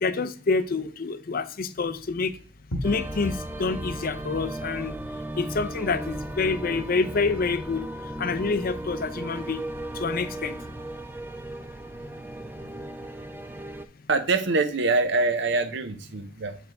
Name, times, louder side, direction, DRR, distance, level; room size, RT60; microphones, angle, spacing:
voice 1, 0.0-2.3 2.8-4.9 5.4-7.8 8.2-9.6 10.0-10.5, left 4 dB, 45° left, 11 dB, 0.5 m, -27 dB
sound 1, 1.8-11.9, left 1 dB, 85° left, 1.5 m, -42 dB
sound 2, 2.8-13.9, right 1 dB, 10° right, 0.4 m, -36 dB
voice 2, 14.1-16.6, right 3 dB, 60° right, 10 dB, 0.8 m, -24 dB
7.6 x 4.9 x 3.5 m, 0.42 s
head